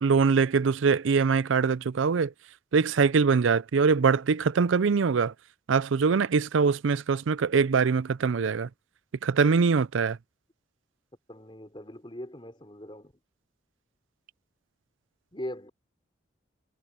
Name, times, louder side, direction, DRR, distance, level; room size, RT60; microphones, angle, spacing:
voice 1, 0.0-2.3 2.7-5.3 5.7-8.7 9.2-10.2, right 5 dB, 85° right, 0.5 m, -23 dB
voice 2, 11.3-13.1 15.3-15.7, equal, 25° left, 4.0 m, -40 dB
head